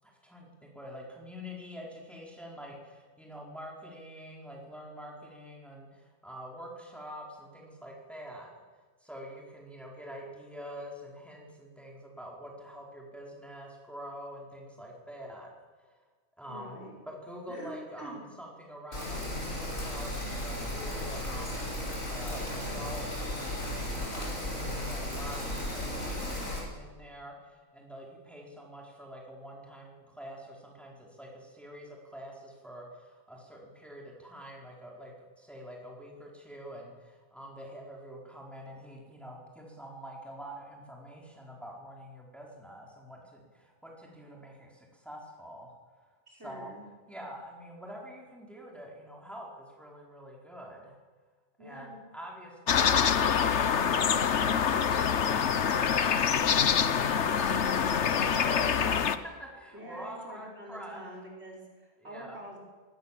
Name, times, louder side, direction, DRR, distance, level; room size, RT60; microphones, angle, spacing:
voice 1, 0.0-8.5 9.0-15.5 15.8-15.9 16.4-16.8 17.1-25.4 25.7-46.7 47.1-51.0 51.6-56.4 56.7-61.0 62.0-62.4, equal, ahead, -2 dB, 4.7 m, -46 dB
voice 2, 16.5-17.0 17.5-18.2 46.3-46.9 51.6-52.0 57.3-57.8 59.7-62.6, right 1 dB, 50° right, 0 dB, 5.5 m, -46 dB
Rain, 18.9-26.6, left 1 dB, 75° left, 6.9 m, -35 dB
sound 1, 52.7-59.2, left 7 dB, 60° left, 1.3 m, -25 dB
22.5 x 19.0 x 7.6 m, 1.4 s
omnidirectional pair, 1.4 m